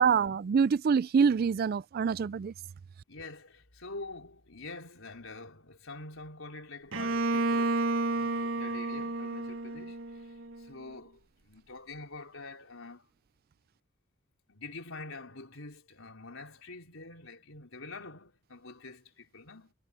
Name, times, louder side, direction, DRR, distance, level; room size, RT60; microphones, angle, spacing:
voice 1, 0.0-2.5, right 6 dB, 45° right, 0.3 m, -25 dB
voice 2, 3.1-13.1 14.5-19.7, left 3 dB, 70° left, 4.2 m, -46 dB
Bowed string instrument, 6.9-10.7, right 2 dB, 70° right, 1.6 m, -31 dB
head